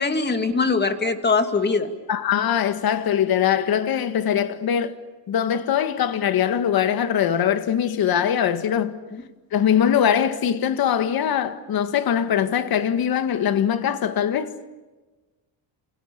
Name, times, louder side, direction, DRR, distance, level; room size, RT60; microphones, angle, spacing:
voice 1, 0.0-1.9 9.1-9.2, left 4 dB, 25° left, 2.5 m, -22 dB
voice 2, 2.1-5.0 5.3-9.0 9.5-14.5, left 9 dB, 55° left, 1.8 m, -22 dB
29.0 x 29.0 x 7.1 m
cardioid pair, 135°, 42 cm